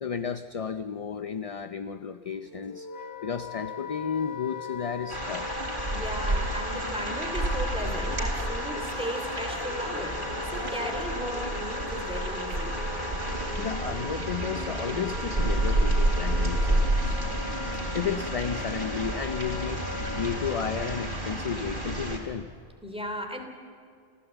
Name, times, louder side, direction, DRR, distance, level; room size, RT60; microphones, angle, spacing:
voice 1, 0.0-2.9 3.2-5.5 13.6-17.2 17.9-19.8 20.2-22.5, left 7 dB, 40° left, 10 dB, 0.6 m, -33 dB
Wind instrument woodwind instrument, 2.4-21.2, left 5 dB, 75° left, 1.6 m, -40 dB
sound 1, 5.1-22.2, right 1 dB, 55° right, 3.6 m, -30 dB
voice 2, 5.9-12.8 22.8-23.4, equal, 5° right, 3 dB, 2.8 m, -36 dB
sound 2, 7.8-16.7, equal, 20° right, 4.5 m, -44 dB
28.5 x 16.0 x 8.1 m, 2.3 s
omnidirectional pair, 1.0 m